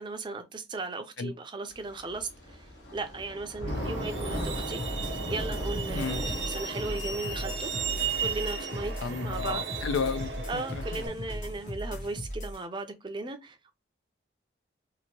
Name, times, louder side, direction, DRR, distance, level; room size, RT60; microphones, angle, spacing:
voice 1, 0.0-7.7 8.2-9.6 10.5-13.8, right 3 dB, 25° right, 0.4 m, -37 dB
Thunder / Rain, 1.7-11.6, equal, 70° left, 1.1 m, -39 dB
Truck, 3.7-11.1, right 6 dB, 80° right, 0.8 m, -36 dB
sound 1, 4.8-12.6, equal, 40° left, 0.6 m, -38 dB
voice 2, 5.9-6.3 9.0-11.0, left 5 dB, 90° left, 0.4 m, -33 dB
2.8 x 2.6 x 2.9 m
head